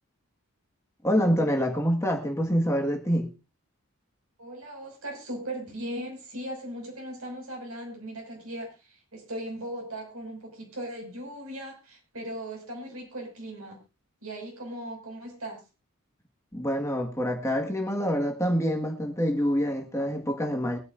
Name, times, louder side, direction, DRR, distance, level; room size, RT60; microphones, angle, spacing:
voice 1, 1.0-3.3 16.5-20.8, equal, 15° left, 1.6 m, -26 dB
voice 2, 4.4-13.8 14.2-15.6, right 1 dB, 80° right, 5.7 m, -38 dB
23.0 x 9.8 x 2.5 m
head